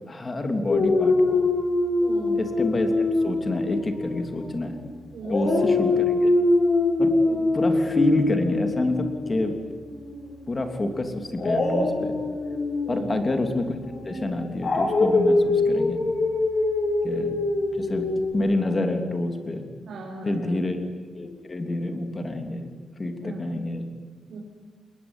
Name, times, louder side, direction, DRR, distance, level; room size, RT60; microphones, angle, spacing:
voice 1, 0.1-1.5 2.4-2.9 3.2-4.8 5.3-6.3 7.0-7.1 7.5-9.5 10.5-12.1 12.9-13.7 14.0-16.0 17.0-17.3 17.7-18.1 18.3-19.6 20.2-20.8 21.1-22.7 23.0-23.9, left 2 dB, 25° left, 6 dB, 3.0 m, -27 dB
Dog, 0.7-4.9 5.2-10.2 11.3-18.3, left 2 dB, 40° left, 7.2 m, -24 dB
voice 2, 2.0-2.5 5.1-5.7 7.2-7.7 12.8-13.2 17.8-17.9 19.9-20.6 23.2-23.6 24.3-24.4, right 3 dB, 75° right, -2 dB, 5.2 m, -38 dB
27.5 x 21.5 x 9.9 m, 1.6 s
wide cardioid pair, 165°, 0 cm